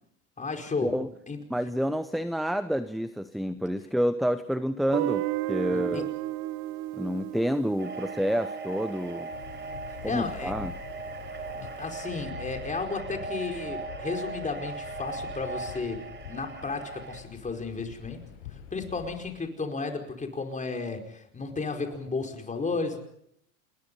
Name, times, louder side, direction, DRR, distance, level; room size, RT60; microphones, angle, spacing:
voice 1, 0.4-0.9 1.3-1.4 5.7-6.0 9.9-10.5 11.5-16.0 16.3-18.2 18.7-23.0, left 4 dB, 20° left, 4 dB, 4.8 m, -33 dB
voice 2, 1.5-6.1 7.0-9.3 10.0-10.7, equal, ahead, 12 dB, 0.9 m, -29 dB
Guitar, 4.9-9.8, right 15 dB, 65° right, 1.6 m, -34 dB
sound 1, 7.8-17.2, right 4 dB, 25° right, 4.9 m, -39 dB
sound 2, 9.3-19.3, left 10 dB, 80° left, 7.3 m, -45 dB
29.0 x 21.0 x 5.5 m, 0.72 s
supercardioid pair, 110°, 40 cm